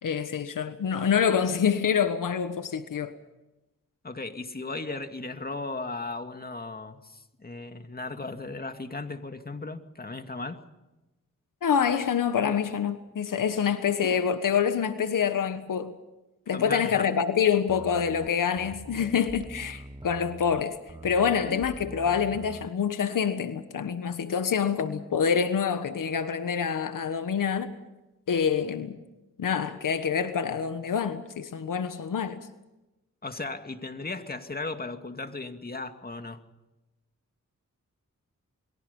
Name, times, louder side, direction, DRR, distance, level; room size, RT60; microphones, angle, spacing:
voice 1, 0.0-3.1 11.6-16.0 16.5-20.8 21.0-27.7 28.3-29.0 29.4-32.4, left 7 dB, 80° left, 1.4 m, -26 dB
voice 2, 4.0-10.6 16.5-17.1 33.2-36.4, left 3 dB, 30° left, 2.4 m, -36 dB
sound 1, 17.7-22.7, right 2 dB, 15° right, 1.2 m, -43 dB
28.5 x 22.5 x 5.5 m
cardioid pair, 60°, 32 cm